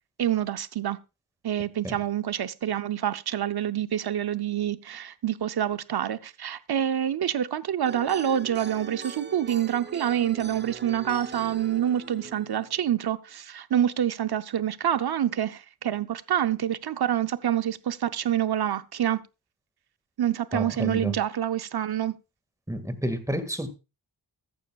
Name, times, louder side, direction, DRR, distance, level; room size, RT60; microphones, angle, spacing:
voice 1, 0.2-1.0 1.4-19.2 20.2-22.2, right 10 dB, 70° right, 0.7 m, -27 dB
sound 1, 7.8-12.9, right 5 dB, 30° right, 0.5 m, -40 dB
voice 2, 20.5-21.2 22.7-23.7, equal, 10° right, 1.9 m, -30 dB
14.5 x 13.5 x 2.4 m
wide cardioid pair, 100°, 39 cm